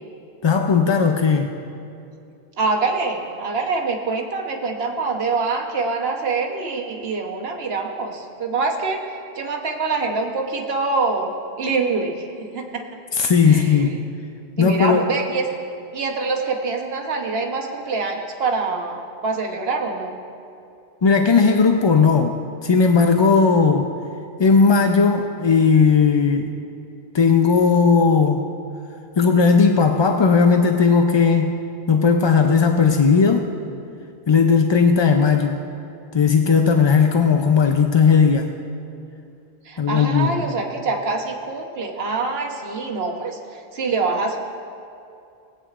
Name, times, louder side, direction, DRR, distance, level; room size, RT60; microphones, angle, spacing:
voice 1, 0.4-1.5 13.1-13.9 14.6-15.1 21.0-23.9 24.4-26.5 27.1-28.4 29.2-31.6 31.9-33.5 34.3-35.6 36.1-38.5 39.8-40.4, left 5 dB, 45° left, 4 dB, 0.3 m, -16 dB
voice 2, 2.6-9.0 9.3-12.3 12.5-12.9 13.4-14.0 14.6-15.4 15.9-20.2 39.6-44.4, right 4 dB, 75° right, 2 dB, 1.2 m, -25 dB
19.5 x 8.8 x 2.4 m, 2.5 s
omnidirectional pair, 1.0 m